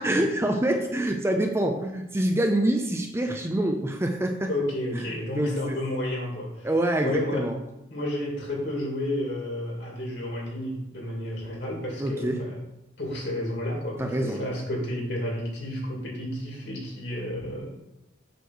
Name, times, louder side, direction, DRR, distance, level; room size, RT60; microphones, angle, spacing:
voice 1, 0.0-4.5 4.9-5.8 6.6-7.5 12.0-12.4 14.0-14.4, right 1 dB, 15° right, 3 dB, 0.5 m, -26 dB
voice 2, 4.5-6.7 7.0-7.5 7.9-12.6 13.0-17.7, left 1 dB, 60° left, -2 dB, 2.4 m, -31 dB
8.1 x 3.2 x 6.3 m, 0.91 s
head